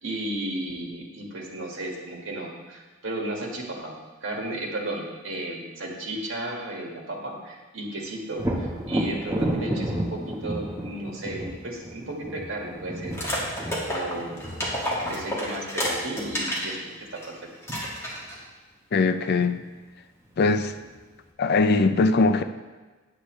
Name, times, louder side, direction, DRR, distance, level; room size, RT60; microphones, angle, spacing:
voice 1, 0.0-14.5 15.0-16.9 17.1-17.4, right 1 dB, 70° right, -1 dB, 1.9 m, -34 dB
Thunder, 8.4-16.0 19.7-19.8 20.3-21.1, right 1 dB, 15° right, 1.1 m, -32 dB
sound 1, 13.1-16.7 17.2-17.3 17.6-18.4, equal, 15° left, 2.0 m, -30 dB
voice 2, 18.9-19.6 20.4-20.7 21.4-22.4, left 3 dB, 50° left, 10 dB, 0.4 m, -21 dB
9.9 x 8.2 x 3.2 m, 1.3 s
head